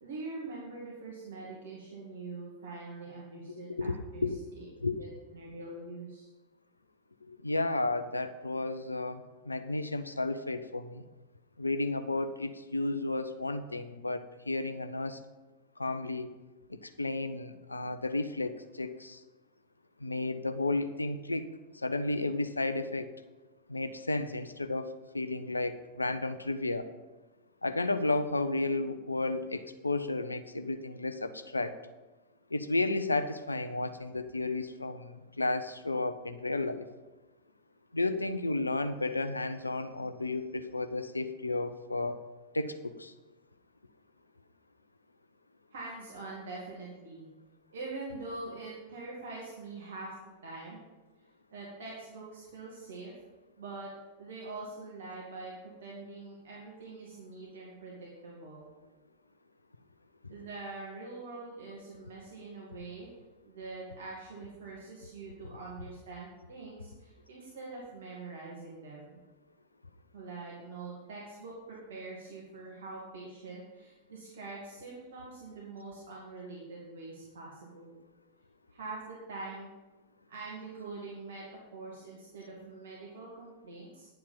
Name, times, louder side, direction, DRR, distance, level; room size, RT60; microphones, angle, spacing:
voice 1, 0.0-4.3 4.5-4.6 5.0-5.1 5.3-6.3 45.7-47.3 47.7-50.8 51.5-53.1 53.6-53.9 54.2-55.5 55.8-58.7 60.3-63.1 63.5-69.2 70.1-78.0 78.7-79.7 80.3-81.4 81.7-84.1, right 3 dB, 60° right, -5 dB, 2.2 m, -44 dB
voice 2, 3.8-4.4 4.8-5.0 7.3-11.0 11.6-15.2 15.8-16.3 16.7-19.2 20.0-21.5 21.8-23.1 23.7-26.9 27.6-31.8 32.5-36.9 37.9-42.2 42.5-43.1, left 2 dB, 80° left, 10 dB, 0.6 m, -33 dB
10.5 x 7.4 x 5.6 m, 1.2 s
figure-of-eight pair, 90°, 0 cm